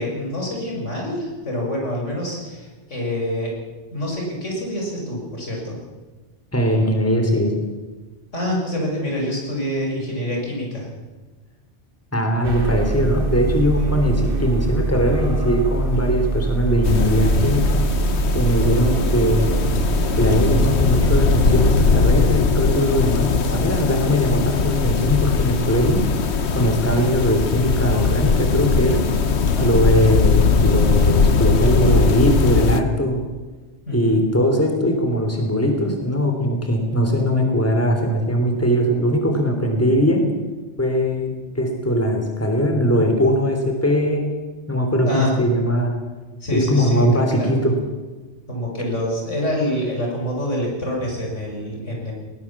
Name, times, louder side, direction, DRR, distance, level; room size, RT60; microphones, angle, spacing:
voice 1, 0.0-3.5 3.9-5.8 8.3-10.9 13.8-13.9 29.5-29.7 33.9-34.2 45.1-45.3 46.4-47.5 48.5-52.1, equal, 85° left, -1 dB, 6.5 m, -26 dB
voice 2, 6.5-7.5 12.1-17.8 18.3-19.6 20.2-26.0 26.5-29.0 29.6-33.2 33.9-40.2 40.8-44.3 44.7-45.9 46.5-47.7, equal, 10° left, 3 dB, 3.4 m, -20 dB
sound 1, 12.4-21.9, right 2 dB, 45° right, 2.4 m, -23 dB
sound 2, 16.8-32.8, left 4 dB, 65° left, 1.4 m, -20 dB
20.0 x 19.0 x 7.3 m, 1.3 s
omnidirectional pair, 1.2 m